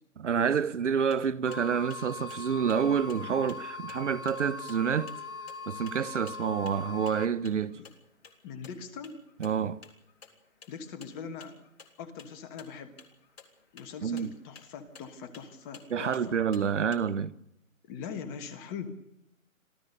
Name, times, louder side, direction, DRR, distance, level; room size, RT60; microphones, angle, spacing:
voice 1, 0.2-5.1 5.7-7.8 9.4-9.8 14.0-14.3 15.9-17.3, right 7 dB, 55° right, 1.0 m, -28 dB
sound 1, 0.9-17.0, left 5 dB, 45° left, 3.4 m, -56 dB
sound 2, 1.5-7.3, left 3 dB, 85° left, 3.0 m, -41 dB
voice 2, 8.4-9.2 10.7-11.6 12.0-12.9 13.7-16.4 17.8-18.9, left 6 dB, 15° left, 1.4 m, -41 dB
26.0 x 15.5 x 6.8 m
hypercardioid pair, 150°, 42 cm